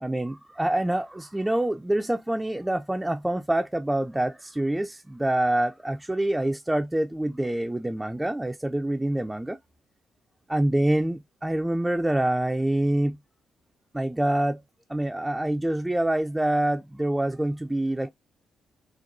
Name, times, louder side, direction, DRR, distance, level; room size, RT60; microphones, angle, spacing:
voice 1, 0.0-9.6 10.5-13.2 13.9-14.6 14.9-18.1, right 1 dB, 10° right, 0.3 m, -26 dB
4.2 x 2.3 x 2.5 m
hypercardioid pair, 45°, 0 cm